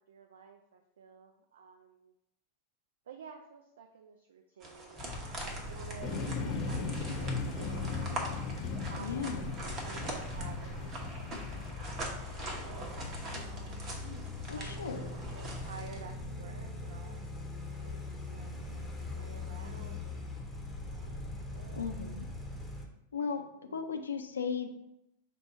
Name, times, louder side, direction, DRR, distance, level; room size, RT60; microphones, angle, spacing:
voice 1, 0.1-2.1 3.1-8.3 8.9-13.8 14.4-18.5 19.1-20.4 20.7-21.9 23.7-23.9, right 6 dB, 65° right, 4 dB, 0.4 m, -52 dB
sound 1, 4.6-16.1, right 1 dB, 30° right, 1.0 m, -43 dB
sound 2, 5.0-22.9, left 2 dB, ahead, 0.8 m, -42 dB
sound 3, 6.0-11.7, left 5 dB, 40° left, 0.7 m, -37 dB
voice 2, 9.0-9.6 14.5-15.2 21.8-22.2 23.1-23.4 23.7-24.7, left 6 dB, 70° left, 6 dB, 0.4 m, -36 dB
5.0 x 2.2 x 4.8 m, 0.84 s
figure-of-eight pair, 90°, 0 cm